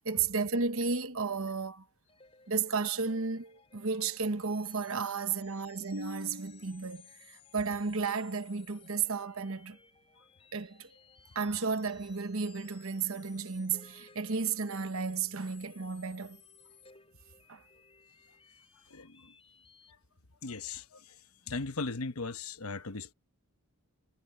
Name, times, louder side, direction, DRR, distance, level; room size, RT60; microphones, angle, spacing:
voice 1, 0.0-1.8 2.5-9.8 10.5-10.9 11.3-16.4 17.5-17.6, right 5 dB, 65° right, 1.1 m, -33 dB
sound 1, 2.0-19.9, left 6 dB, 25° left, 6.0 m, -60 dB
voice 2, 20.4-20.8 21.5-23.1, left 3 dB, 75° left, 1.1 m, -37 dB
head